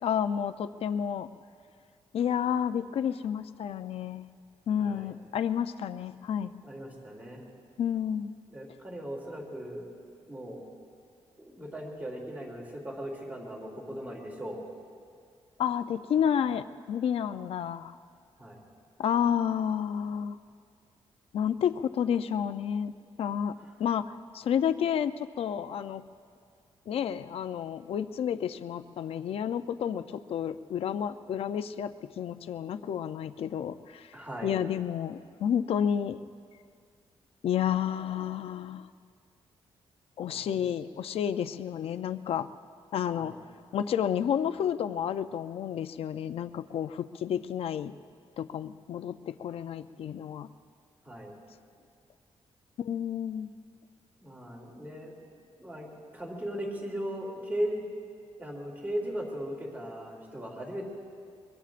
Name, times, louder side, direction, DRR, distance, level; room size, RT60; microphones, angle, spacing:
voice 1, 0.0-1.3 2.1-4.3 4.7-6.5 7.8-8.3 15.6-17.9 19.0-20.4 21.3-22.9 23.2-23.5 23.8-26.0 26.9-34.1 34.4-36.2 37.4-38.9 40.2-42.5 42.9-43.3 43.7-47.9 48.4-50.5 52.8-53.5, left 8 dB, 70° left, 11 dB, 0.5 m, -30 dB
voice 2, 4.8-5.1 6.6-7.4 8.5-9.9 10.3-10.6 11.4-14.6 18.4-18.6 23.6-23.7 34.1-34.5 40.2-40.6 43.1-43.3 51.0-51.3 54.2-55.2 55.6-57.9 58.4-60.9, equal, 15° right, -2 dB, 2.8 m, -38 dB
23.0 x 23.0 x 2.5 m, 2.2 s
wide cardioid pair, 145°, 10 cm